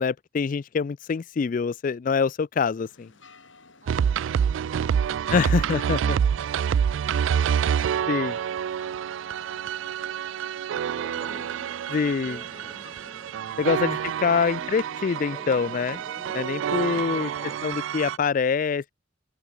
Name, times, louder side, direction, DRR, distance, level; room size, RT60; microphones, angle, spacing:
voice 1, 0.0-3.1 5.3-6.2 8.1-8.3 11.9-12.4 13.6-16.0 16.3-17.3 17.6-18.9, left 5 dB, 45° left, 0.3 m, -25 dB
sound 1, 2.8-13.1, left 3 dB, 75° left, 5.6 m, -55 dB
voice 2, 3.8-5.6, right 2 dB, 40° right, 6.6 m, -61 dB
sound 2, 3.9-18.2, right 8 dB, 75° right, 0.3 m, -27 dB
sound 3, 10.9-17.7, left 1 dB, 5° left, 0.9 m, -47 dB
open air
head